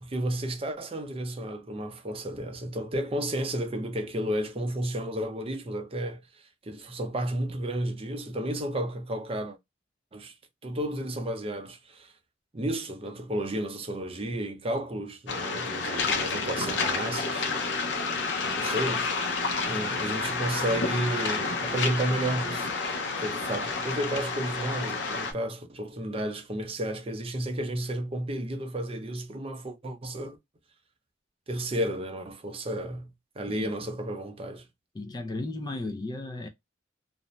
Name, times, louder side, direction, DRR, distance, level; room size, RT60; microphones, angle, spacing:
voice 1, 0.0-6.2 6.6-9.6 10.1-10.3 10.6-12.1 12.5-17.5 18.6-19.1 19.7-22.7 23.2-30.4 31.5-34.7, right 1 dB, 30° right, 0.5 m, -32 dB
Waves surf, 15.3-25.3, left 4 dB, 65° left, 0.6 m, -30 dB
voice 2, 34.9-36.5, left 2 dB, 20° left, 0.3 m, -35 dB
2.5 x 2.1 x 3.0 m
head